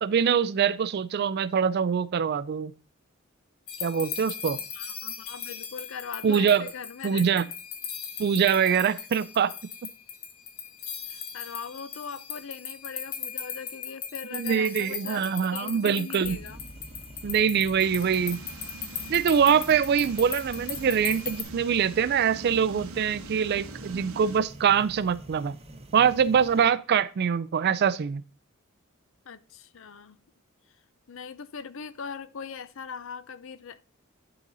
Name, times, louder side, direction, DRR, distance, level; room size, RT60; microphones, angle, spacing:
voice 1, 0.0-2.7 3.8-4.6 6.2-6.6 7.0-7.4 8.2-9.5 14.3-16.4 17.2-18.4 19.1-25.5 25.9-28.2, right 7 dB, 50° right, 0.3 m, -24 dB
sound 1, 3.7-21.4, left 7 dB, 85° left, 1.4 m, -38 dB
voice 2, 4.5-7.4 11.1-16.6 26.7-26.8 29.2-30.2 31.1-33.8, left 6 dB, 65° left, 0.6 m, -41 dB
sound 2, 16.2-26.7, right 1 dB, 30° right, 0.9 m, -46 dB
sound 3, 17.8-24.4, right 3 dB, 85° right, 0.8 m, -44 dB
10.5 x 4.0 x 3.9 m
head